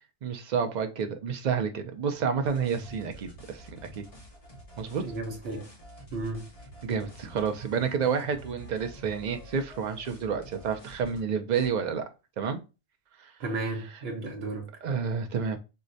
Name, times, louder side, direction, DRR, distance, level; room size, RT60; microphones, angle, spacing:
voice 1, 0.2-3.7 4.0-4.1 4.8-5.0 6.8-12.0 12.4-12.6 13.2-13.3 14.8-15.6, right 6 dB, 55° right, 0.5 m, -29 dB
sound 1, 2.4-11.2 11.5-11.7, equal, 35° left, 1.0 m, -49 dB
voice 2, 5.0-5.7 6.1-6.5 13.4-14.7, right 2 dB, 75° right, 0.9 m, -34 dB
4.6 x 2.1 x 2.6 m
omnidirectional pair, 1.1 m